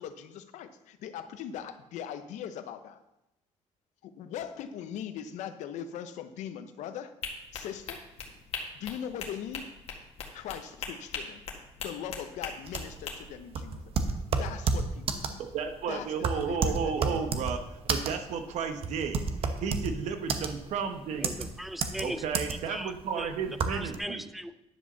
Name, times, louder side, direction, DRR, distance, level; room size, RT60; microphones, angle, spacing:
voice 1, 0.0-3.0 4.0-7.1 7.5-8.0 8.7-9.7 10.3-11.4 11.8-13.9 14.4-15.5 15.9-17.3, left 9 dB, 85° left, 10 dB, 0.9 m, -40 dB
sound 1, 7.2-13.1, left 5 dB, 55° left, 1.8 m, -39 dB
sound 2, 12.7-24.0, right 5 dB, 55° right, 1.0 m, -31 dB
voice 2, 15.4-21.5 22.0-24.2, right 6 dB, 70° right, 7 dB, 1.2 m, -33 dB
voice 3, 21.1-24.5, equal, ahead, 12 dB, 0.4 m, -39 dB
10.5 x 5.1 x 6.8 m, 0.92 s
cardioid pair, 145°, 12 cm